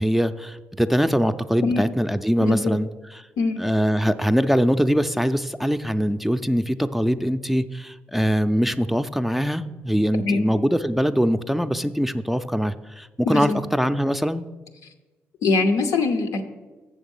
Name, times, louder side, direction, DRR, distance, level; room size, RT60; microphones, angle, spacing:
voice 1, 0.0-2.9 3.6-14.4, equal, 5° right, 10 dB, 0.4 m, -22 dB
voice 2, 2.4-2.8 3.4-3.6 10.2-10.5 13.2-13.6 15.4-16.4, left 3 dB, 85° left, 6 dB, 0.8 m, -22 dB
7.2 x 6.6 x 5.4 m, 1.2 s
supercardioid pair, 65°, 6 cm